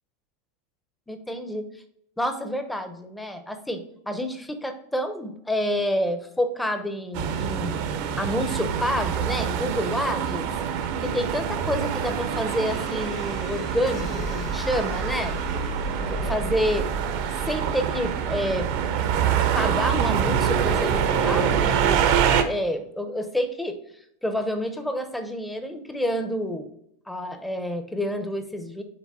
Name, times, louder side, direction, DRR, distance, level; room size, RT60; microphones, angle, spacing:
voice 1, 1.1-1.6 2.2-7.7 8.2-10.5 11.0-15.4 16.0-16.9 17.5-18.7 19.5-23.8 24.2-26.7 27.1-28.8, equal, 5° left, 7 dB, 0.7 m, -28 dB
sound 1, 7.1-22.4, right 8 dB, 55° right, 0.7 m, -25 dB
sound 2, 12.4-20.2, equal, 40° left, 1.1 m, -37 dB
6.0 x 4.0 x 4.1 m, 0.73 s
supercardioid pair, 145°, 0 cm